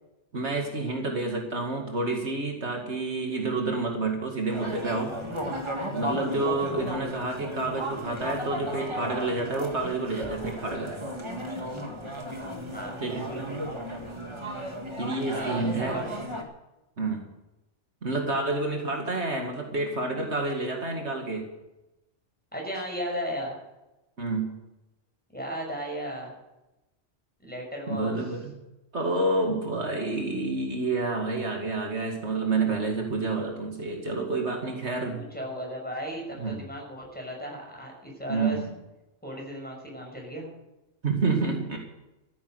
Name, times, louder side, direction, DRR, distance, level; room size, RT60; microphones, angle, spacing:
voice 1, 0.3-5.1 5.9-11.0 13.0-13.3 15.0-16.0 17.0-17.2 18.0-21.5 24.2-24.6 27.9-28.5 28.9-35.2 36.4-36.6 38.3-38.7 41.0-41.8, right 3 dB, 70° right, 2 dB, 2.4 m, -29 dB
sound 1, 4.5-16.4, equal, 25° right, 2.0 m, -35 dB
voice 2, 12.7-13.5 15.3-15.6 15.9-16.1 22.5-23.6 25.3-26.3 27.4-28.1 35.1-38.6 39.2-40.5, equal, 10° left, -1 dB, 6.0 m, -35 dB
14.0 x 10.5 x 8.0 m, 0.98 s
omnidirectional pair, 1.2 m